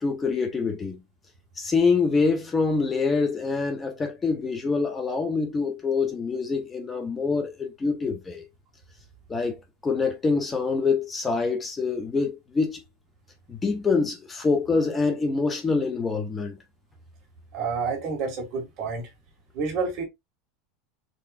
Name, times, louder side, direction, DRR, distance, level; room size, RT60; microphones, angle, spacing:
voice 1, 0.0-1.0 1.6-8.4 9.3-12.8 13.5-16.6, left 4 dB, 15° left, 0.8 m, -25 dB
voice 2, 17.5-19.1 19.5-20.0, right 4 dB, 45° right, 1.8 m, -29 dB
4.0 x 3.9 x 2.4 m
supercardioid pair, 145°, 0 cm